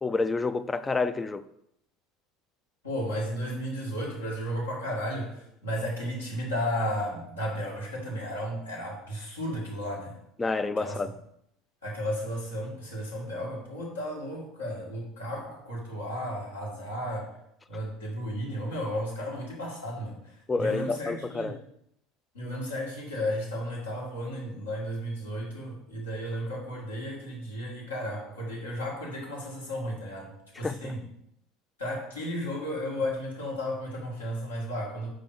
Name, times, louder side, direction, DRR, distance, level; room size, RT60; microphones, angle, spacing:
voice 1, 0.0-1.4 10.4-11.1 20.5-21.6 30.6-30.9, left 3 dB, 15° left, 0.3 m, -29 dB
voice 2, 2.8-10.2 10.8-11.0 11.8-17.3 17.7-21.5 22.3-31.0 31.8-35.1, equal, 75° left, 1.8 m, -34 dB
5.1 x 5.0 x 4.6 m
figure-of-eight pair, 70°, 0 cm